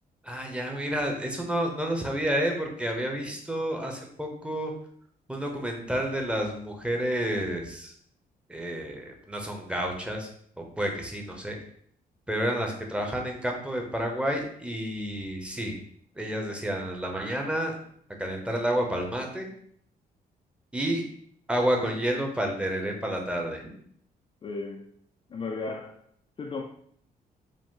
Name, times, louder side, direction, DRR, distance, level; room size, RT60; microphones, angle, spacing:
voice 1, 0.2-4.7 5.3-7.9 8.5-10.3 10.6-11.6 12.3-15.7 16.2-17.8 18.2-19.5 20.7-21.0 21.5-23.6, right 1 dB, 5° right, 0.7 m, -30 dB
voice 2, 24.4-25.0 25.3-26.0 26.4-26.6, left 3 dB, 35° left, 0.4 m, -35 dB
5.0 x 2.1 x 3.7 m
cardioid pair, 125°, 16 cm